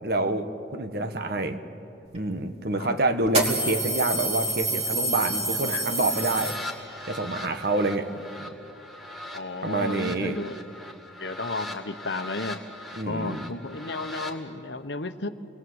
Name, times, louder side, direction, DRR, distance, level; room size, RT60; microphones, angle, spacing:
voice 1, 0.0-1.6 2.1-6.5 7.1-8.1 9.6-10.4 13.0-13.4, right 2 dB, 50° right, 8 dB, 1.3 m, -27 dB
sound 1, 2.1-2.2 3.2-7.0, right 2 dB, 30° right, 2.7 m, -28 dB
sound 2, 5.9-14.4, left 1 dB, ahead, 1.9 m, -40 dB
voice 2, 9.3-10.6 11.2-12.6 13.0-15.3, left 3 dB, 65° left, 9 dB, 1.1 m, -33 dB
28.5 x 21.0 x 8.0 m, 2.7 s
head